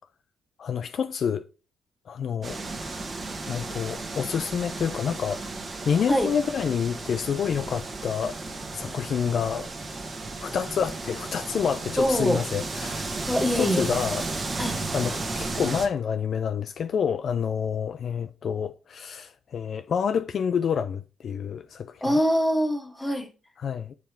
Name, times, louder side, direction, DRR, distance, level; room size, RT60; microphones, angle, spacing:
voice 1, 0.6-1.5 2.1-2.6 3.5-5.4 5.9-8.4 8.7-9.7 10.4-13.1 13.6-14.2 14.9-22.2 23.6-23.9, left 7 dB, 55° left, 0.4 m, -28 dB
sound 1, 2.4-15.9, right 3 dB, 35° right, 1.2 m, -34 dB
voice 2, 12.0-12.4 13.3-13.8 14.6-14.8 22.0-23.3, equal, 10° left, 1.2 m, -23 dB
7.3 x 3.5 x 4.3 m
cardioid pair, 90°, 0 cm